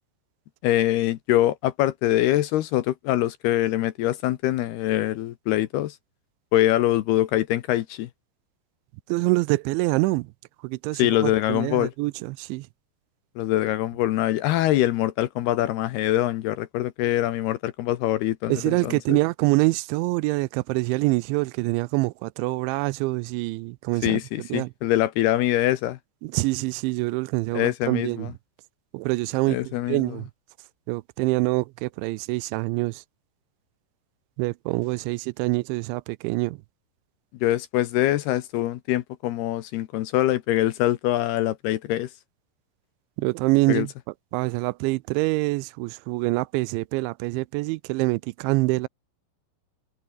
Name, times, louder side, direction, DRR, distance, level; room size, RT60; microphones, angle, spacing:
voice 1, 0.6-6.0 6.5-8.1 11.0-11.9 13.4-19.2 24.0-26.0 27.5-28.3 29.5-30.2 37.4-42.1 43.7-43.9, left 14 dB, 75° left, 2.7 m, -24 dB
voice 2, 9.1-10.3 10.6-12.7 18.5-24.7 26.2-28.3 28.9-30.3 30.9-33.0 34.4-36.6 43.2-43.9 44.3-48.9, right 23 dB, 90° right, 3.0 m, -25 dB
omnidirectional pair, 5.2 m